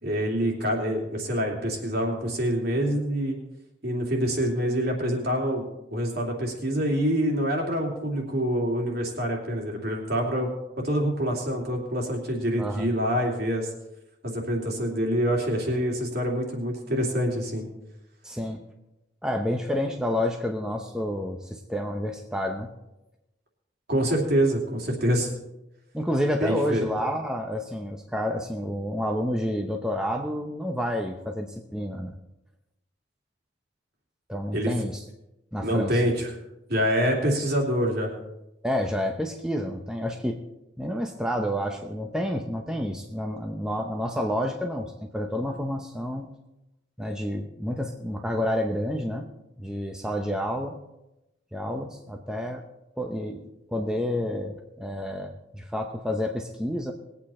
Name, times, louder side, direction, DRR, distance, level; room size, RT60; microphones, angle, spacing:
voice 1, 0.0-3.4 3.8-5.6 5.9-10.5 10.8-13.7 14.2-17.7 23.9-25.3 26.4-26.9 34.5-34.7 35.6-36.3 36.7-38.1, equal, 55° right, 0 dB, 2.9 m, -26 dB
voice 2, 12.6-12.9 18.2-18.6 19.2-22.7 25.9-32.2 34.3-35.0 35.5-36.0 38.6-40.4 40.8-46.3 47.0-49.3 49.6-50.8 51.5-52.6 52.9-53.5 53.7-56.9, equal, 5° right, 2 dB, 0.8 m, -29 dB
20.5 x 8.5 x 4.3 m, 0.93 s
head